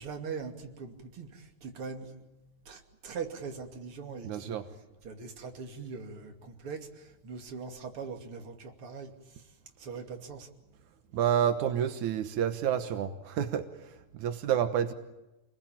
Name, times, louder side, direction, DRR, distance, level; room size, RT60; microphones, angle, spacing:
voice 1, 0.0-2.2 2.6-4.6 5.0-9.5 9.8-10.5, right 5 dB, 50° right, 4 dB, 3.4 m, -41 dB
voice 2, 4.2-4.7 11.1-14.9, right 9 dB, 85° right, 8 dB, 2.7 m, -29 dB
28.0 x 21.0 x 8.9 m, 1.0 s
omnidirectional pair, 3.4 m